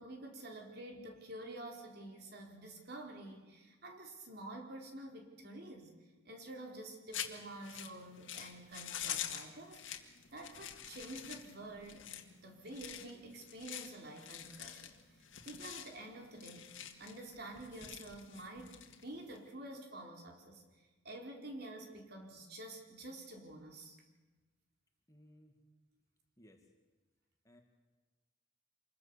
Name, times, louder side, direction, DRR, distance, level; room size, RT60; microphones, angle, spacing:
voice 1, 0.0-5.9 6.2-14.9 15.2-20.6 21.0-24.0, right 1 dB, 50° right, 2 dB, 4.1 m, -49 dB
sound 1, 7.1-19.5, left 10 dB, 70° left, 2.1 m, -46 dB
voice 2, 25.1-25.6 26.4-26.7 27.4-27.6, left 1 dB, 15° left, 3 dB, 2.2 m, -61 dB
26.5 x 22.0 x 7.0 m, 1.2 s
head